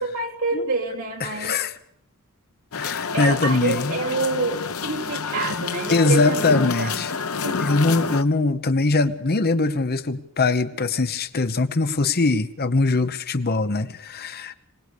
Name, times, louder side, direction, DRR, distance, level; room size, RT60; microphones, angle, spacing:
voice 1, 0.0-1.6 3.1-7.2 7.4-8.0, right 3 dB, 65° right, 0 dB, 3.2 m, -28 dB
voice 2, 1.2-1.7 2.7-4.0 5.9-7.1 7.6-14.5, left 3 dB, 45° left, 12 dB, 1.0 m, -22 dB
sound 1, 2.7-8.2, left 5 dB, 70° left, 0.9 m, -28 dB
25.0 x 18.5 x 6.8 m, 0.66 s
head